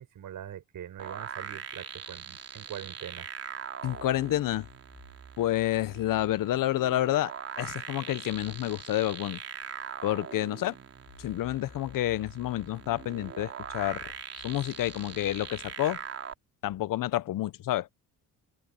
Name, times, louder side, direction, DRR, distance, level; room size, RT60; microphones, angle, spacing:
voice 1, 0.0-3.3, right 10 dB, 65° right, 5.5 m, -43 dB
sound 1, 1.0-16.3, right 7 dB, 45° right, 3.4 m, -42 dB
voice 2, 3.8-4.7 5.4-9.4 10.0-10.7 11.2-14.0 14.4-16.0 16.6-17.9, left 14 dB, 65° left, 0.7 m, -29 dB
cardioid pair, 100°, 35 cm